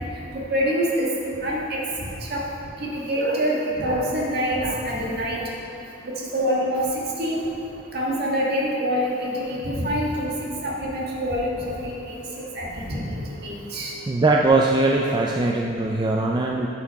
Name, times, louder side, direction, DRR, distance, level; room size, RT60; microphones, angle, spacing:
voice 1, 0.3-1.1 1.4-1.8 2.3-2.5 2.8-5.4 6.1-6.9 7.2-7.5 7.9-10.3 10.6-12.2 12.5-13.9, equal, 55° right, -3 dB, 1.5 m, -25 dB
voice 2, 14.1-16.7, right 2 dB, 20° right, 0 dB, 0.3 m, -20 dB
10.5 x 5.7 x 4.6 m, 2.8 s
head